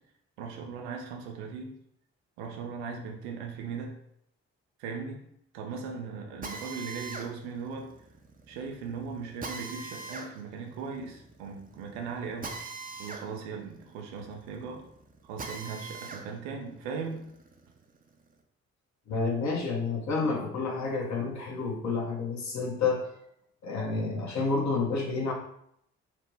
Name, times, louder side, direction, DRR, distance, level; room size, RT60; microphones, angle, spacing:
voice 1, 0.4-1.7 2.4-3.9 4.8-5.2 5.5-7.9 8.5-12.5 13.0-14.8 15.2-17.3, right 5 dB, 85° right, 2 dB, 0.5 m, -38 dB
Drill, 6.4-16.3 16.7-18.3, right 3 dB, 25° right, 0.5 m, -43 dB
voice 2, 19.1-23.1 23.6-25.3, left 4 dB, 55° left, 0 dB, 0.8 m, -29 dB
2.9 x 2.1 x 3.2 m, 0.73 s
hypercardioid pair, 40°, 33 cm